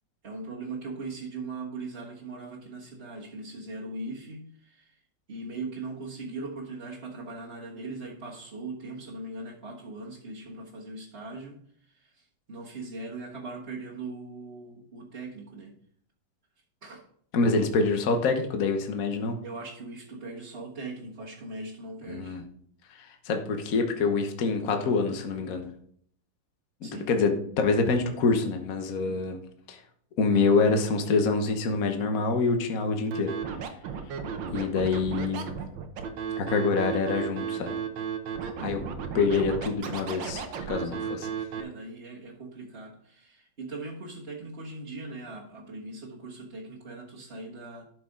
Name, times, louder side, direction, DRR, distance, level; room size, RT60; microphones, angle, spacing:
voice 1, 0.2-5.0 5.3-15.7 16.8-17.0 19.4-22.4 26.8-27.1 29.0-29.2 38.4-38.7 40.8-41.1 41.5-47.8, right 3 dB, 35° right, -6 dB, 1.5 m, -40 dB
voice 2, 17.3-19.4 22.1-22.4 22.9-25.7 26.8-29.4 29.7-29.8 30.2-33.3 34.5-35.5 36.4-37.7 38.6-38.8 39.1-41.3, left 4 dB, 50° left, 5 dB, 1.4 m, -26 dB
Scratching (performance technique), 33.1-41.6, right 7 dB, 80° right, 1.8 m, -34 dB
12.5 x 6.0 x 3.7 m, 0.63 s
omnidirectional pair, 2.1 m